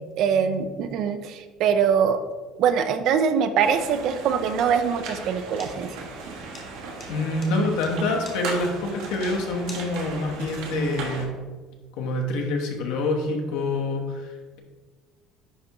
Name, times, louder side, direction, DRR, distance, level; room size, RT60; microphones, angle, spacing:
voice 1, 0.2-2.2 2.6-6.1, right 7 dB, 45° right, 9 dB, 0.4 m, -23 dB
sound 1, 3.6-11.3, right 4 dB, 75° right, 1.2 m, -37 dB
sound 2, 5.6-10.4, left 3 dB, 25° left, 0.9 m, -46 dB
voice 2, 7.1-11.4 12.0-14.6, left 2 dB, 70° left, 1 dB, 1.1 m, -26 dB
10.0 x 3.5 x 3.0 m, 1.3 s
cardioid pair, 175°, 0 cm